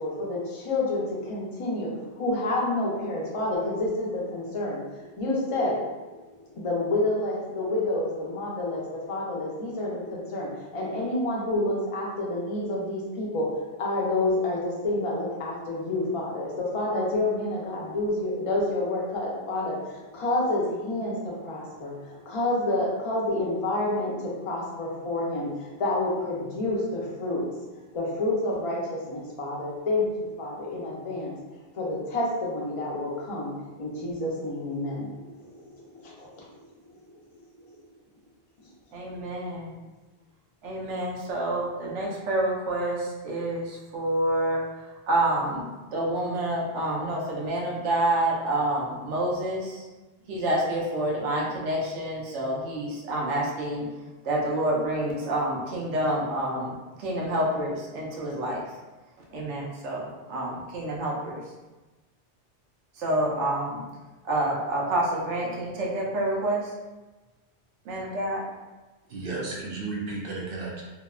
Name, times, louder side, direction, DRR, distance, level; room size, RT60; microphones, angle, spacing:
voice 1, 0.0-5.9 6.2-31.4 31.7-36.5 37.3-37.7, left 2 dB, 45° left, -3 dB, 0.4 m, -29 dB
voice 2, 38.9-39.8 40.6-49.9 50.3-53.9 54.2-58.7 59.3-61.4 62.9-63.8 64.2-66.7 67.8-68.5, right 1 dB, 85° right, -3 dB, 0.9 m, -28 dB
voice 3, 69.1-70.8, right 3 dB, 60° right, -3 dB, 0.6 m, -33 dB
2.7 x 2.1 x 2.3 m, 1.2 s
omnidirectional pair, 1.2 m